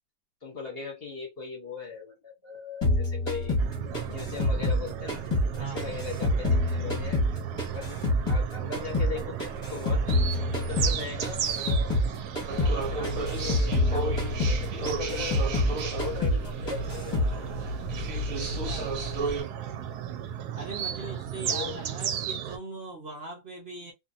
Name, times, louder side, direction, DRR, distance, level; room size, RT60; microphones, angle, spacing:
voice 1, 0.4-3.5 4.1-5.2 5.6-7.2 7.7-10.0 10.3-11.9 12.5-17.3 20.9-21.2 21.4-21.8, left 5 dB, 45° left, 1.1 m, -39 dB
sound 1, 2.8-5.5 5.8-8.5 8.7-12.1 12.3-12.8 13.0-15.7 16.0-16.4 16.7-17.3, left 1 dB, 20° left, 1.2 m, -26 dB
sound 2, 3.6-22.6, right 10 dB, 85° right, 1.1 m, -35 dB
voice 2, 5.5-6.0 18.3-18.9 20.5-23.9, right 2 dB, 45° right, 1.0 m, -41 dB
sound 3, 12.5-19.4, right 1 dB, 65° right, 1.2 m, -33 dB
2.7 x 2.6 x 2.5 m
omnidirectional pair, 1.6 m